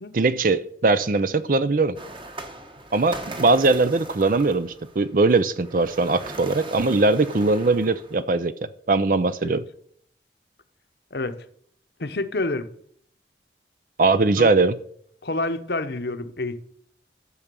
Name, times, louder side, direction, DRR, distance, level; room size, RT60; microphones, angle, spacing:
voice 1, 0.1-2.0 2.9-8.5 8.9-9.6 14.0-14.7, right 3 dB, 50° right, 0.5 m, -20 dB
sound 1, 2.0-8.2, right 2 dB, 30° right, 1.3 m, -39 dB
voice 2, 11.1-11.4 12.0-12.7 14.4-14.5 15.2-16.6, left 2 dB, 65° left, 1.0 m, -28 dB
12.0 x 7.2 x 6.8 m
head